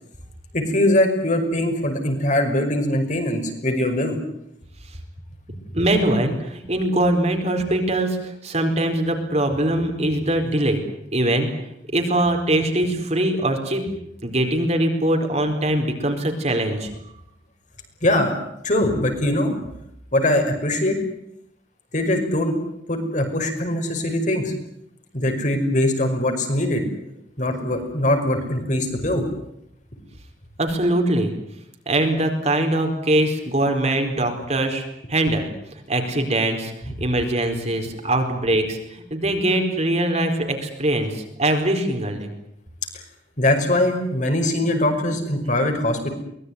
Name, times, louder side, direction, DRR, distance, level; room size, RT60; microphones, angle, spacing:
voice 1, 0.5-4.2 18.0-18.3 18.6-19.5 20.1-21.0 21.9-22.6 22.9-24.5 25.1-26.8 27.4-29.2 43.4-46.1, left 1 dB, 45° left, 4 dB, 5.6 m, -21 dB
voice 2, 5.7-10.8 11.1-11.5 11.9-13.9 14.2-16.9 30.6-31.3 31.9-35.5 35.9-42.3, right 1 dB, 40° right, 4 dB, 4.5 m, -22 dB
23.5 x 20.5 x 9.7 m, 0.78 s
head